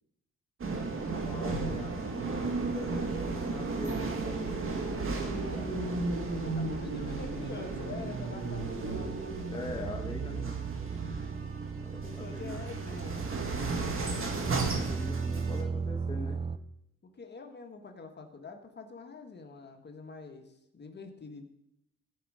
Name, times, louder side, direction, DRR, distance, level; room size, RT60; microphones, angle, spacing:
sound 1, 0.6-15.6, right 3 dB, 45° right, 1.8 m, -34 dB
voice 1, 0.7-6.3 9.4-10.5 11.7-12.9 14.4-16.4, left 2 dB, 15° left, 1 dB, 1.2 m, -44 dB
voice 2, 6.4-9.9 12.0-13.2 17.0-21.5, left 4 dB, 35° left, 4 dB, 1.6 m, -45 dB
sound 2, 9.7-13.9 14.3-16.6, right 5 dB, 20° right, 0.5 m, -36 dB
15.5 x 5.2 x 5.0 m, 0.80 s
cardioid pair, 90°, 30 cm